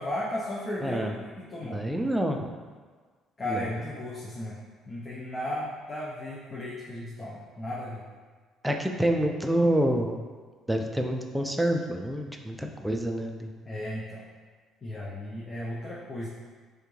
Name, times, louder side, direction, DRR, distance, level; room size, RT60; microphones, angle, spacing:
voice 1, 0.0-1.8 3.4-4.6 4.9-8.0 13.7-14.2 14.8-16.3, left 1 dB, 30° left, -5 dB, 0.8 m, -35 dB
voice 2, 0.8-1.1 1.6-2.5 3.5-3.6 8.6-10.2 10.7-13.5, right 1 dB, 5° right, 3 dB, 0.5 m, -27 dB
5.0 x 3.3 x 3.2 m, 1.5 s
supercardioid pair, 85°, 0 cm